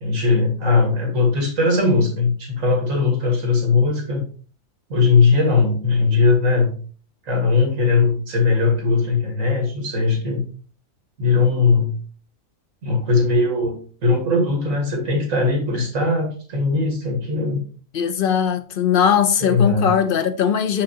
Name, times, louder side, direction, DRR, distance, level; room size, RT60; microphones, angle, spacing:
voice 1, 0.0-4.2 4.9-6.7 7.2-10.4 11.2-11.9 12.8-17.6 19.4-19.9, left 4 dB, 75° right, 2.1 m, -19 dB
voice 2, 17.9-20.8, left 8 dB, 60° left, 0.6 m, -19 dB
6.3 x 5.9 x 2.8 m
omnidirectional pair, 1.4 m